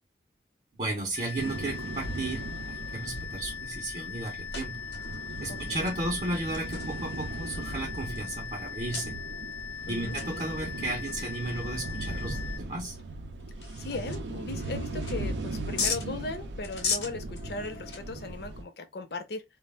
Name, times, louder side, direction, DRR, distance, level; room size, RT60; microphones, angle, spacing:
voice 1, 0.7-4.8 5.4-9.2 9.9-13.0, right 2 dB, 40° right, 0.6 m, -34 dB
sound 1, 1.2-12.6, left 8 dB, 15° left, 0.3 m, -40 dB
sound 2, 1.3-1.7 2.6-2.7 3.0-3.5 4.0-4.1 4.5-6.0 6.5-8.4 8.9-9.1 10.1-10.5 10.8-10.9 11.5-11.6 12.2-12.3 12.9-13.0 13.4-14.2 14.6-15.4 15.8-16.1 16.6-18.3, left 5 dB, 90° left, 0.8 m, -36 dB
sound 3, 1.4-18.6, right 2 dB, 90° right, 0.5 m, -38 dB
voice 2, 5.5-5.9 9.9-10.2 13.8-19.4, left 3 dB, 65° left, 0.5 m, -38 dB
2.3 x 2.0 x 3.2 m
head